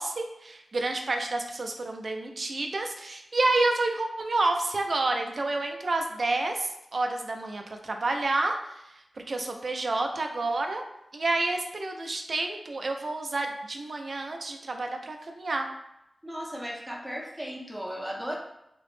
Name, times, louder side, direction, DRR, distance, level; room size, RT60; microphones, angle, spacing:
voice 1, 0.0-8.6 9.3-10.8 11.1-15.7, right 2 dB, 60° right, 4 dB, 0.4 m, -29 dB
voice 2, 16.2-18.4, equal, 5° right, -2 dB, 0.6 m, -36 dB
2.9 x 2.0 x 3.1 m, 0.83 s
cardioid pair, 60°, 0 cm